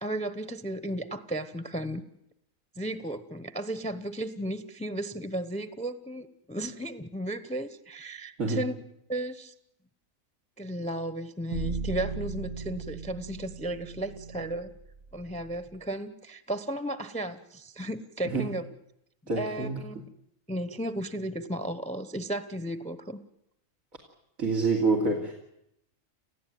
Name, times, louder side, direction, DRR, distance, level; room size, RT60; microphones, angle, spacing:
voice 1, 0.0-2.0 2.8-8.8 9.1-9.5 10.6-14.7 15.1-18.6 19.4-20.0 20.5-23.2, right 1 dB, 5° left, 12 dB, 0.8 m, -34 dB
sound 1, 11.5-15.7, right 3 dB, 60° right, 2.2 m, -37 dB
voice 2, 19.3-19.8 24.4-25.3, right 3 dB, 85° right, 0 dB, 3.3 m, -26 dB
29.5 x 15.5 x 9.3 m, 0.80 s
omnidirectional pair, 1.4 m